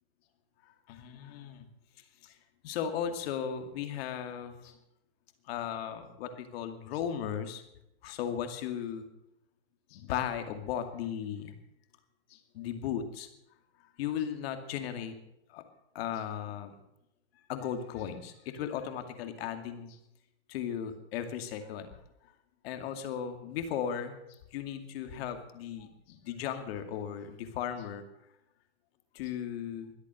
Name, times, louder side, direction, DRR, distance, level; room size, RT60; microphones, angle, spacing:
voice 1, 0.6-1.7 2.2-2.4 2.6-4.8 5.5-7.6 8.0-9.1 9.9-11.5 12.3-13.3 14.0-15.1 15.5-15.6 15.9-16.7 17.5-20.0 20.5-21.9 22.6-24.2 24.5-28.0 29.1-30.0, left 9 dB, 60° left, 7 dB, 2.4 m, -36 dB
22.5 x 8.4 x 6.5 m, 0.83 s
hypercardioid pair, 125°, 35 cm